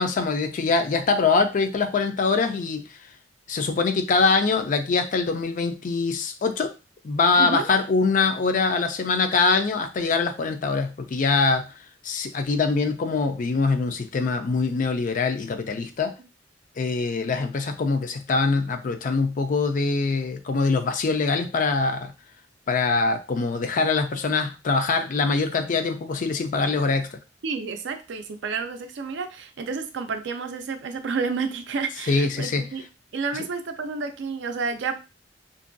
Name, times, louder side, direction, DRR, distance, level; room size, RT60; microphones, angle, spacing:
voice 1, 0.0-2.8 3.5-6.7 7.0-11.7 12.0-16.1 16.8-22.1 22.7-27.2 32.1-32.7, left 4 dB, 45° left, 7 dB, 0.4 m, -23 dB
voice 2, 7.4-7.7 27.4-32.8 33.1-35.0, right 4 dB, 70° right, 7 dB, 0.4 m, -30 dB
2.5 x 2.2 x 2.5 m, 0.29 s
head